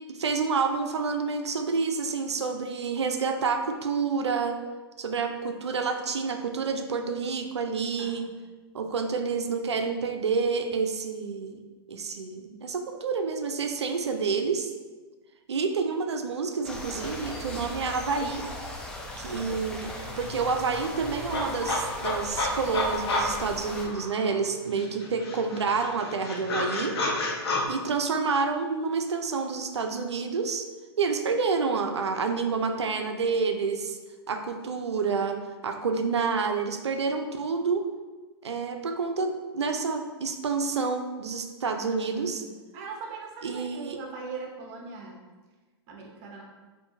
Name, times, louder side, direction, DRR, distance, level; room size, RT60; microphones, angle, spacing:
voice 1, 0.1-4.6 5.0-8.3 8.7-11.6 11.9-14.7 15.5-18.4 19.2-27.0 27.7-30.7 31.0-34.0 34.3-35.4 35.6-37.9 38.4-42.4 43.4-44.0, right 5 dB, 90° right, 6 dB, 0.4 m, -28 dB
sound 1, 16.6-23.9, left 1 dB, 5° left, 0.4 m, -38 dB
sound 2, 19.5-19.6 19.8-24.4 24.8-27.6, left 2 dB, 65° left, 0.7 m, -31 dB
voice 2, 42.4-45.2 45.9-46.4, right 4 dB, 45° right, 0 dB, 0.8 m, -40 dB
3.5 x 2.6 x 2.6 m, 1.3 s
hypercardioid pair, 110°, 14 cm